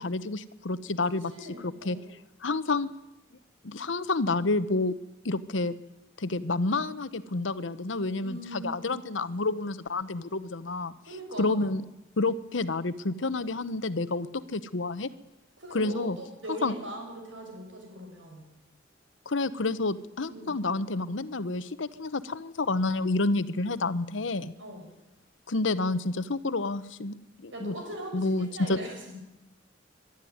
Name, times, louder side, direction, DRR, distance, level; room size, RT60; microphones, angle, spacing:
voice 1, 0.0-1.3 1.6-2.0 2.4-2.9 3.6-5.0 5.2-5.7 6.2-10.9 11.4-11.8 12.2-15.1 15.7-16.2 16.6-16.7 19.3-24.5 25.5-27.2 27.4-27.7 28.1-28.8, left 3 dB, 80° left, 14 dB, 1.0 m, -29 dB
voice 2, 1.2-2.1 8.2-9.0 11.1-11.7 15.6-18.5 20.3-20.6 24.6-24.9 27.5-29.2, right 1 dB, 80° right, 2 dB, 6.3 m, -40 dB
23.0 x 12.0 x 9.5 m, 0.94 s
head